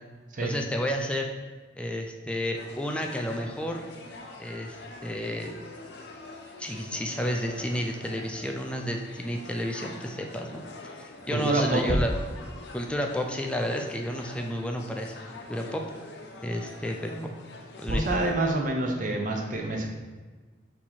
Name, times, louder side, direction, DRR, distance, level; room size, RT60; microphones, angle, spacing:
voice 1, 0.4-1.3 1.8-3.8 4.4-4.8 5.0-5.5 6.6-10.6 11.0-12.1 12.7-15.1 15.5-15.8 16.4-17.3 17.8-18.1, equal, 5° left, 2 dB, 0.3 m, -31 dB
sound 1, 2.5-18.3, left 2 dB, 65° left, 0.6 m, -45 dB
voice 2, 11.3-11.8 17.9-19.9, right 2 dB, 45° right, 1 dB, 0.6 m, -27 dB
4.5 x 2.8 x 4.1 m, 1.3 s
head